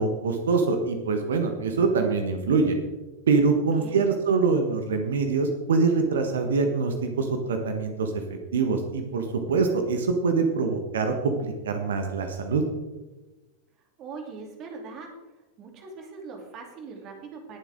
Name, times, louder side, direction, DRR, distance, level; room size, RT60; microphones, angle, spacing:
voice 1, 0.0-2.8 3.3-8.1 8.5-12.6, right 4 dB, 65° right, 5 dB, 1.4 m, -24 dB
voice 2, 14.0-15.1 15.6-17.6, right 4 dB, 35° right, 2 dB, 2.9 m, -41 dB
20.0 x 7.3 x 3.7 m, 1.1 s
figure-of-eight pair, 90°, 0 cm